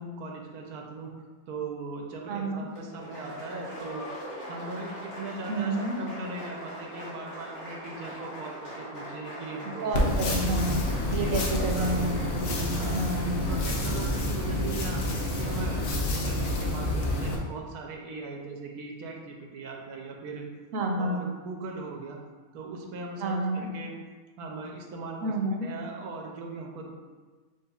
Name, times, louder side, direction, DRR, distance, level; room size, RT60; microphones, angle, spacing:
voice 1, 0.0-4.0 4.4-9.9 10.4-10.5 11.1-12.2 12.8-13.0 13.5-15.8 16.1-20.5 21.0-22.2 22.5-24.0 24.4-25.3 25.6-26.9, right 3 dB, 85° right, 1 dB, 1.2 m, -39 dB
voice 2, 2.3-2.6 5.4-6.0 9.8-10.8 11.1-13.5 20.7-21.3 23.2-23.7 25.2-25.7, right 2 dB, 70° right, 2 dB, 1.0 m, -29 dB
Applause, 2.7-16.0, equal, 50° left, 1.5 m, -42 dB
sound 1, 9.9-17.4, left 1 dB, 90° left, 1.2 m, -28 dB
7.2 x 3.0 x 2.3 m, 1.4 s
omnidirectional pair, 1.5 m